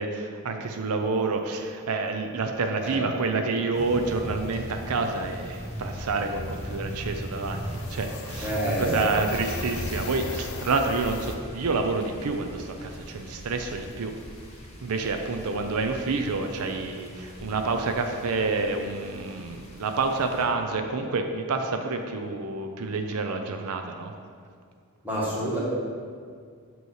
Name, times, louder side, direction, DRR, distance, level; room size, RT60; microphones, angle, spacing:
voice 1, 0.0-14.1 14.8-24.1, right 3 dB, 80° right, 5 dB, 0.5 m, -28 dB
sound 1, 3.0-3.1 3.3-3.5 3.8-11.4, left 4 dB, 75° left, 0.6 m, -40 dB
sound 2, 3.7-20.5, equal, 30° left, 1.3 m, -39 dB
voice 2, 8.4-9.2 25.0-25.6, right 1 dB, 10° right, -7 dB, 1.7 m, -28 dB
8.0 x 3.1 x 6.3 m, 2.1 s
head